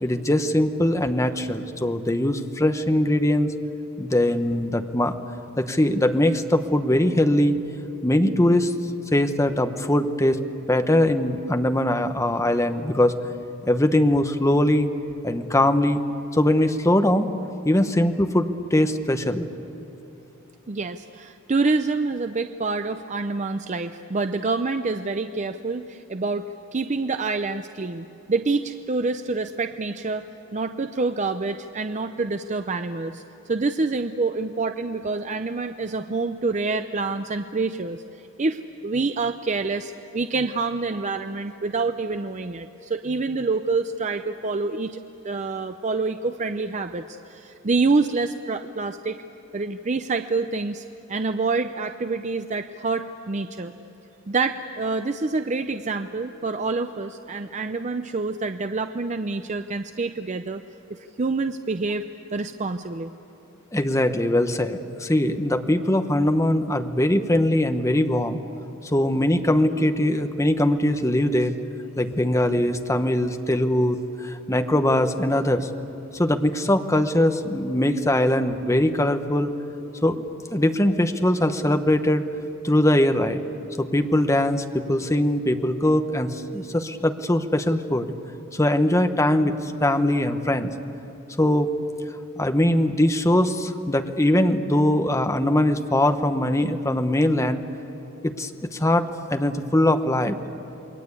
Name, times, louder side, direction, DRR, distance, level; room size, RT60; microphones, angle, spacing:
voice 1, 0.0-3.5 4.0-5.1 5.6-7.6 8.0-8.7 9.1-10.4 10.7-13.2 13.6-14.9 15.2-16.0 16.3-17.3 17.6-19.5 63.7-68.4 68.8-71.5 72.0-75.7 76.1-79.5 80.0-80.2 80.5-82.2 82.6-83.4 83.8-88.1 88.5-90.7 91.4-91.7 92.4-97.6 98.2-100.4, left 1 dB, 15° left, 7 dB, 1.0 m, -21 dB
voice 2, 20.7-26.4 26.7-38.0 38.4-49.2 49.5-53.7 54.3-60.6 60.9-62.0 62.3-63.1, right 3 dB, 35° right, 8 dB, 0.6 m, -27 dB
28.5 x 22.0 x 8.4 m, 2.9 s
head